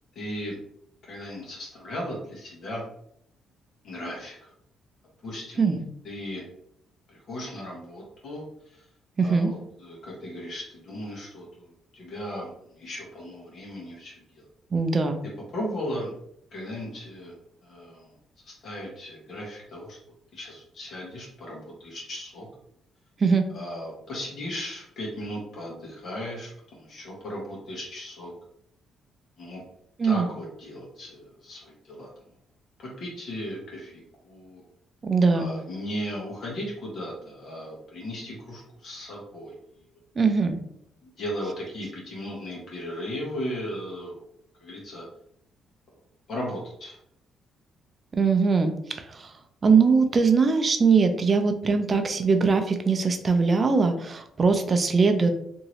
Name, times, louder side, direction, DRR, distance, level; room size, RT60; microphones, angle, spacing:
voice 1, 0.1-0.6 1.0-2.8 3.8-4.5 5.2-5.8 6.0-6.4 7.1-8.9 9.2-14.4 15.5-16.1 16.5-17.3 17.6-18.1 18.4-20.0 20.3-22.5 23.5-28.3 29.4-29.6 30.0-32.1 32.8-34.6 35.3-39.6 41.0-44.2 44.6-45.0 46.3-47.0, equal, 60° left, -3 dB, 1.1 m, -36 dB
voice 2, 9.2-9.5 14.7-15.2 23.2-23.5 30.0-30.2 35.0-35.5 40.2-40.6 48.1-49.3 49.6-55.3, right 4 dB, 35° right, 7 dB, 0.5 m, -21 dB
2.8 x 2.6 x 3.0 m, 0.72 s
cardioid pair, 90°, 0 cm